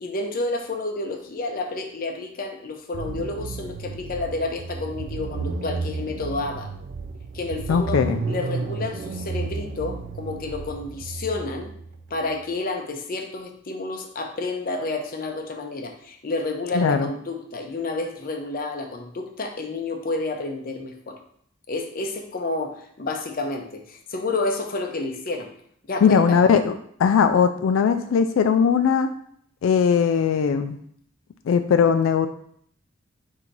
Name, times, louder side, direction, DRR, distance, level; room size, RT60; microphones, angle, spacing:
voice 1, 0.0-6.7 7.3-8.0 8.3-11.7 12.1-21.2 21.7-25.5 25.9-26.5, left 2 dB, 45° left, 4 dB, 0.6 m, -30 dB
sound 1, 2.9-12.3, right 4 dB, 60° right, 0.3 m, -32 dB
voice 2, 7.7-8.2 16.8-17.1 26.0-29.1 29.6-30.8 31.5-32.3, left 6 dB, 85° left, 8 dB, 0.3 m, -19 dB
3.8 x 2.7 x 4.5 m, 0.65 s
head